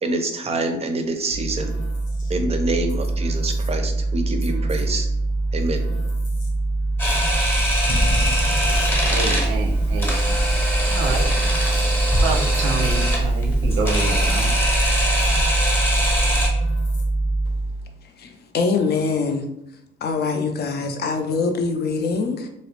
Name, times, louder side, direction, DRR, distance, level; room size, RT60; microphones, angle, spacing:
voice 1, 0.0-1.7 2.3-5.1 5.5-5.8, right 2 dB, 30° right, 5 dB, 0.4 m, -26 dB
sound 1, 1.3-17.9, right 2 dB, 75° left, 0.9 m, -23 dB
Camera, 7.0-16.5, equal, 10° left, 0.7 m, -23 dB
voice 2, 9.0-10.4 10.9-11.3 12.2-14.5, right 4 dB, 85° right, 1 dB, 0.5 m, -28 dB
voice 3, 18.2-19.5 20.0-22.5, left 4 dB, 55° left, 5 dB, 0.4 m, -23 dB
2.4 x 2.0 x 2.9 m, 0.81 s
cardioid pair, 90°, 20 cm